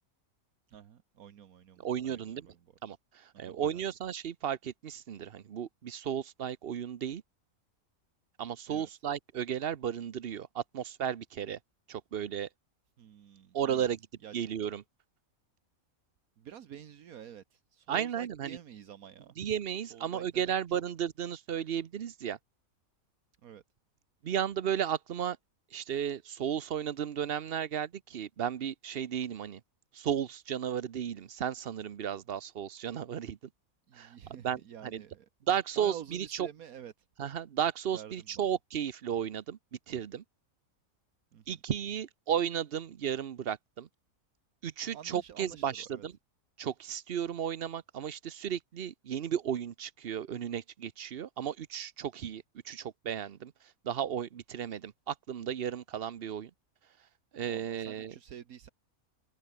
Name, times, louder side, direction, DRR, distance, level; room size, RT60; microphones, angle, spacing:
voice 1, 0.7-2.6 3.3-3.8 8.7-8.9 13.0-13.9 14.2-14.3 16.4-19.3 19.9-20.8 23.4-23.6 33.9-35.3 35.8-36.9 37.9-38.4 41.3-41.6 44.9-46.0 57.5-58.7, right 9 dB, 75° right, 1.5 m, -49 dB
voice 2, 1.8-2.5 2.8-7.2 8.4-11.6 11.9-12.5 13.5-14.0 14.3-14.8 17.9-18.6 19.4-22.4 24.2-25.4 25.7-29.6 29.9-33.4 33.9-34.1 34.4-35.0 35.5-36.5 37.2-39.6 39.9-40.2 41.5-43.9 44.6-46.2 46.6-53.5 53.8-56.5 57.3-58.1, right 9 dB, 50° right, 0.9 m, -34 dB
omnidirectional pair, 1.5 m